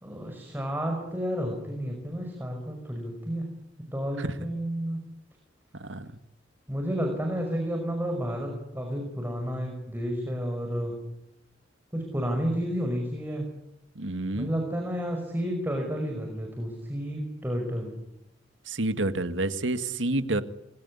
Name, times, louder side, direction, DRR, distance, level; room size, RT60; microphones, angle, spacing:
voice 1, 0.0-3.5 3.9-5.0 6.7-11.0 11.9-13.5 14.3-17.9, equal, 10° right, 2 dB, 5.6 m, -31 dB
voice 2, 14.0-14.5 18.7-20.4, right 2 dB, 90° right, 10 dB, 2.0 m, -28 dB
27.0 x 22.5 x 9.8 m, 0.89 s
head